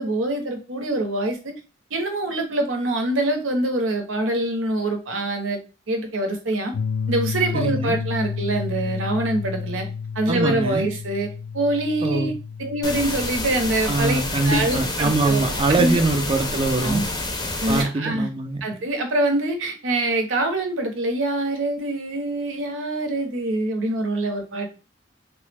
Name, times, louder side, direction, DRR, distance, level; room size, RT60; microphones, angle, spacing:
voice 1, 0.0-1.5 1.9-5.6 5.9-6.7 7.1-9.9 10.1-11.3 11.5-12.3 12.6-16.0 16.8-17.1 17.6-18.3 18.6-24.7, right 1 dB, 90° right, 4 dB, 0.7 m, -24 dB
sound 1, 6.7-13.4, left 6 dB, 70° left, 0.3 m, -30 dB
voice 2, 7.5-8.0 10.3-10.9 12.0-12.3 13.9-17.1 17.7-18.6, right 3 dB, 30° right, 5 dB, 0.4 m, -23 dB
sound 2, 12.8-17.8, left 2 dB, 20° left, 0.5 m, -28 dB
3.2 x 2.0 x 3.3 m, 0.33 s
head